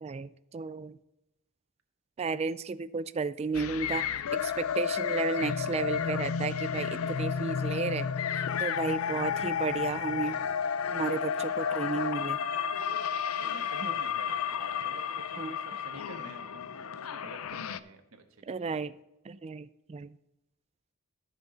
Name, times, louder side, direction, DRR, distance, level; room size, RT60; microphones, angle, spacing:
voice 1, 0.0-1.0 2.2-4.0 4.3-10.4 10.9-12.4 13.8-13.9 15.4-15.5 18.5-18.9 19.3-20.1, right 4 dB, 30° right, 15 dB, 0.3 m, -33 dB
sound 1, 3.5-17.8, left 7 dB, 75° left, 0.5 m, -32 dB
voice 2, 12.5-18.8, right 2 dB, 70° right, 4 dB, 1.4 m, -51 dB
14.0 x 6.0 x 4.0 m, 0.91 s
head